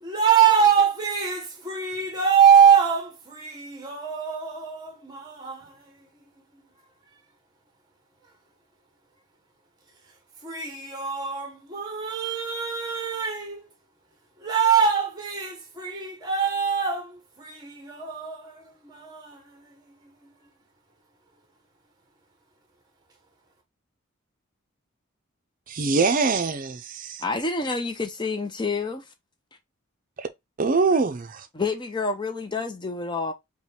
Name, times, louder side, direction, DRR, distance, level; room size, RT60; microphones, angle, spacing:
voice 1, 0.0-5.7 10.4-13.6 14.4-19.4, right 7 dB, 20° right, 1.1 m, -23 dB
voice 2, 25.7-27.2 30.2-30.3 30.6-31.5, right 4 dB, 40° right, 0.5 m, -23 dB
voice 3, 27.2-29.0 31.5-33.3, left 3 dB, 20° left, 0.6 m, -28 dB
5.1 x 2.3 x 3.3 m
head